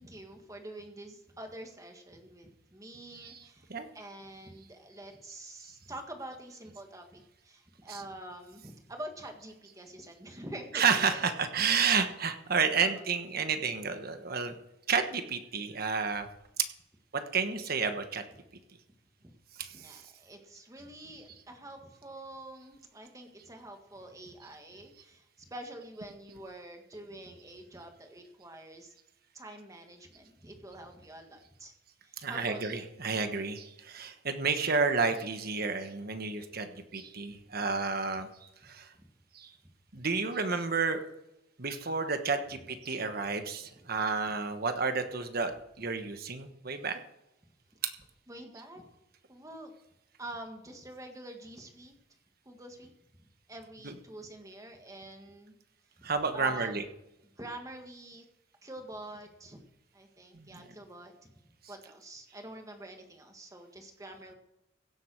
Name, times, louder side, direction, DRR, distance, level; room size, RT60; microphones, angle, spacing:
voice 1, 0.0-11.2 12.8-13.1 14.5-14.6 19.2-19.3 19.7-28.9 29.3-31.7 32.0-32.6 38.9-39.1 42.5-42.6 48.3-48.8 49.3-49.7 50.2-51.9 52.5-52.9 53.2-55.5 56.0-56.8 57.4-58.3 58.6-59.6 59.9-61.3 61.7-64.3, right 1 dB, 15° right, 4 dB, 1.8 m, -46 dB
voice 2, 10.7-14.5 14.9-16.3 17.1-18.2 19.6-20.0 32.2-38.3 38.6-38.9 39.3-39.5 39.9-41.0 41.6-47.0 47.8-47.9 53.8-54.0 56.0-56.8 60.3-60.7, right 5 dB, 50° right, 8 dB, 1.3 m, -31 dB
16.5 x 7.7 x 6.3 m, 0.89 s
head